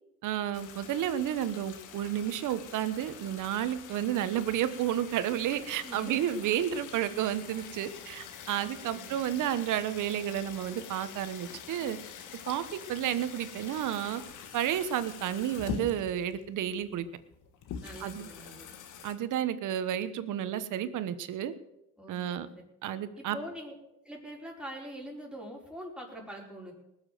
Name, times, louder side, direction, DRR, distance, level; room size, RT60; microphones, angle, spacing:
voice 1, 0.2-12.0 12.5-14.2 14.5-17.1 18.0-18.3 19.0-21.5 22.1-22.5 22.8-23.4, right 11 dB, 85° right, 12 dB, 1.2 m, -31 dB
sound 1, 0.5-19.1, left 7 dB, 85° left, 1.7 m, -45 dB
voice 2, 5.8-6.3 8.5-9.5 17.8-18.7 22.0-22.6 23.2-23.7 24.0-26.7, equal, 5° right, -2 dB, 5.0 m, -44 dB
19.5 x 7.2 x 7.7 m, 0.86 s
cardioid pair, 90°, 30 cm